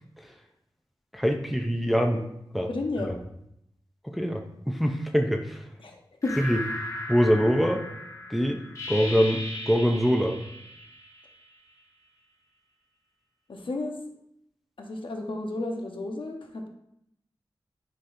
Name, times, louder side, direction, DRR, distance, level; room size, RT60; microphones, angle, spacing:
voice 1, 1.1-2.3 2.5-2.7 4.0-5.6 6.4-6.6 7.1-7.9 8.3-10.4, equal, ahead, 3 dB, 0.6 m, -24 dB
voice 2, 2.7-3.2 5.8-6.3 13.5-14.0 14.8-16.7, left 2 dB, 70° left, 2 dB, 1.0 m, -32 dB
sound 1, 6.2-11.6, left 1 dB, 35° left, 1.5 m, -37 dB
9.7 x 4.1 x 2.6 m, 0.77 s
wide cardioid pair, 95°, 9 cm